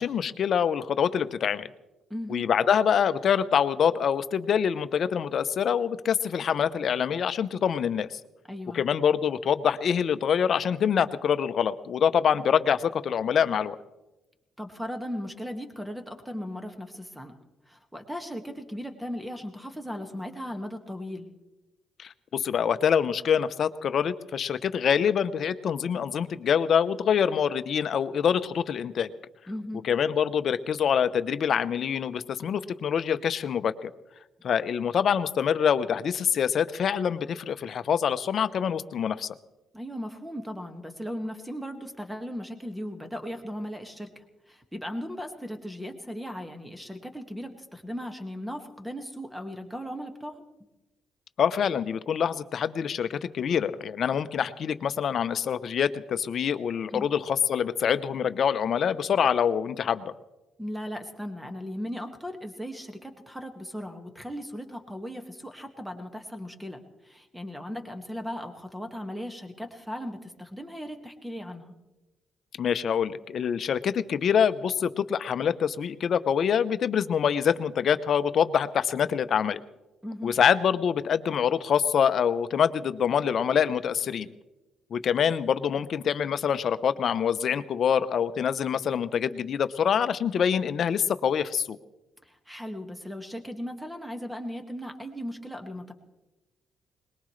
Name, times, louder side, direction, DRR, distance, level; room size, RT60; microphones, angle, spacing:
voice 1, 0.0-1.7 2.3-8.2 8.7-13.8 22.0-29.1 29.8-33.9 34.4-39.3 51.4-60.1 72.6-79.6 80.2-84.3 84.9-91.8, left 8 dB, 60° left, 12 dB, 0.7 m, -25 dB
voice 2, 2.1-2.5 8.5-8.8 14.6-17.3 17.7-21.3 29.5-29.9 39.7-50.4 56.9-57.1 60.6-71.7 80.0-80.3 92.3-95.9, equal, 5° right, 5 dB, 1.9 m, -37 dB
21.5 x 20.5 x 3.3 m, 1.0 s
cardioid pair, 90°, 0 cm